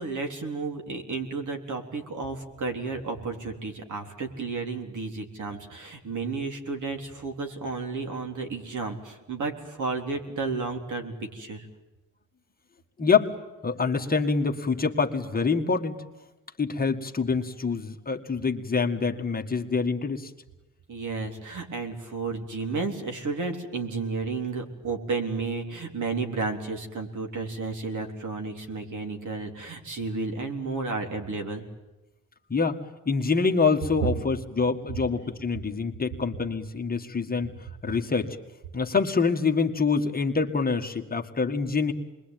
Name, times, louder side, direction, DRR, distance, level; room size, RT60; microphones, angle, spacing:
voice 1, 0.0-11.7 20.9-31.6, right 3 dB, 60° right, 4 dB, 3.8 m, -32 dB
voice 2, 13.0-13.3 13.6-16.0 16.6-20.3 32.5-32.8 33.1-37.5 37.8-38.4 38.7-41.9, left 4 dB, 25° left, 3 dB, 1.8 m, -26 dB
28.0 x 22.0 x 9.2 m, 1.1 s
wide cardioid pair, 140°, 33 cm